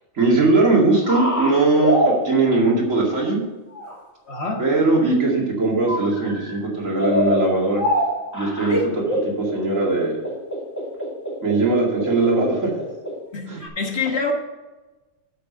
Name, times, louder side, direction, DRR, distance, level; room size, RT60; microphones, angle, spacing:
voice 1, 0.2-3.4 4.6-7.8 8.3-8.8 9.4-10.2 11.4-12.7 13.5-13.6, right 3 dB, 70° right, -3 dB, 2.7 m, -19 dB
sound 1, 1.0-2.4 3.7-4.0 4.8-5.4 5.9-6.6 7.0-13.2 13.6-13.7, equal, 15° left, 2.0 m, -25 dB
voice 2, 4.3-4.6 8.7-8.9 13.3-14.3, left 3 dB, 50° left, 2 dB, 1.6 m, -25 dB
8.2 x 6.1 x 6.6 m, 1.2 s
omnidirectional pair, 1.4 m